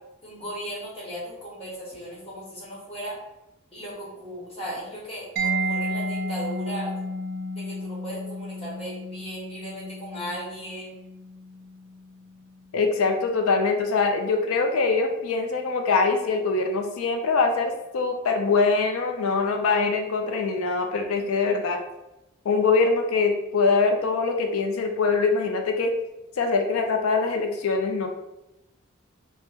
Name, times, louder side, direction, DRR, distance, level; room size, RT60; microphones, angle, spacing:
voice 1, 0.2-3.2 3.7-6.9 7.5-10.9, equal, 30° left, -6 dB, 1.0 m, -36 dB
Mallet percussion, 5.4-12.9, right 1 dB, 45° right, 0.5 m, -32 dB
voice 2, 12.7-21.8 22.4-25.9 26.4-28.1, left 4 dB, 85° left, 4 dB, 0.4 m, -23 dB
2.8 x 2.0 x 3.4 m, 0.93 s
head